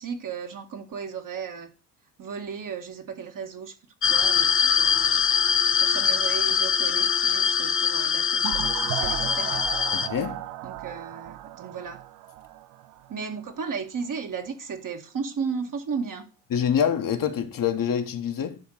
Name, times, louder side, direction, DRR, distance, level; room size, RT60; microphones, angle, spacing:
voice 1, 0.0-1.7 2.2-3.7 4.1-5.2 5.8-9.7 10.6-12.0 13.1-16.3, right 6 dB, 40° right, 1.8 m, -35 dB
sound 1, 4.0-10.1, left 7 dB, 25° left, 0.8 m, -23 dB
sound 2, 8.4-13.1, right 14 dB, 75° right, 0.9 m, -35 dB
voice 2, 9.9-10.4 16.5-18.6, left 8 dB, 45° left, 1.4 m, -26 dB
10.5 x 3.6 x 6.5 m
hypercardioid pair, 55°, 48 cm